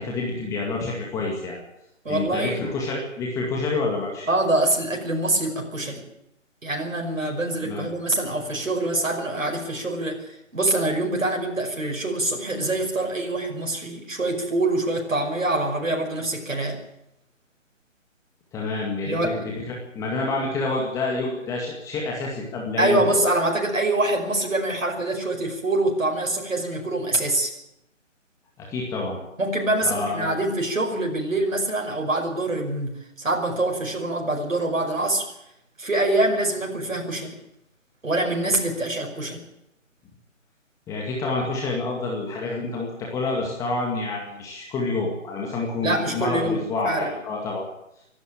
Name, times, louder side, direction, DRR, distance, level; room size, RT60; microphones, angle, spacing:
voice 1, 0.0-1.6 2.1-4.3 7.6-7.9 18.5-23.2 28.6-29.2 29.8-30.3 40.9-47.6, left 3 dB, 10° left, -2 dB, 2.1 m, -28 dB
voice 2, 2.0-2.6 4.3-6.1 6.6-16.8 19.0-19.4 22.8-27.5 29.4-35.3 35.8-37.4 38.0-39.4 45.8-47.1, right 2 dB, 80° right, 1 dB, 5.6 m, -25 dB
25.5 x 11.5 x 9.0 m, 0.84 s
figure-of-eight pair, 150°, 39 cm